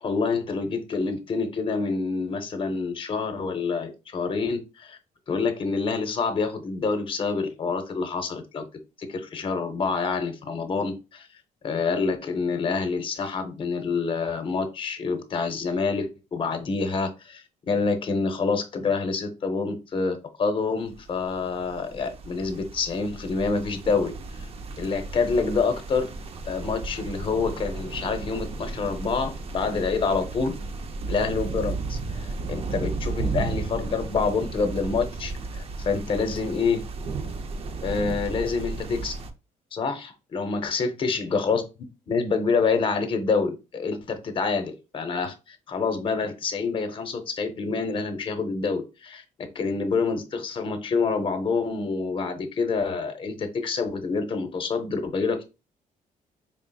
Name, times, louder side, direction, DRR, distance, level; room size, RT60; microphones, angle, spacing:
voice 1, 0.0-5.0 5.3-8.6 9.0-11.3 11.6-24.1 24.8-26.1 26.5-30.5 31.1-36.8 37.8-39.1 39.7-41.6 42.1-55.4, left 4 dB, 35° left, 0.6 m, -27 dB
sound 1, 20.9-39.3, right 3 dB, 45° right, 0.5 m, -34 dB
3.8 x 3.5 x 2.3 m
cardioid pair, 130°, 14 cm